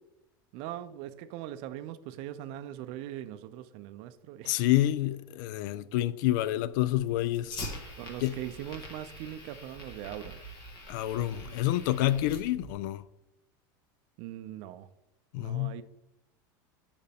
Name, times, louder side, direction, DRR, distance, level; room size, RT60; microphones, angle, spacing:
voice 1, 0.5-4.7 8.0-10.4 14.2-14.9 15.4-15.8, right 12 dB, 55° right, 0.5 m, -41 dB
voice 2, 4.5-7.6 8.2-8.4 10.9-13.0 15.3-15.8, left 14 dB, 70° left, 0.4 m, -28 dB
Fire, 6.7-12.7, left 1 dB, 40° left, 1.5 m, -44 dB
6.6 x 5.0 x 3.5 m
supercardioid pair, 125°, 11 cm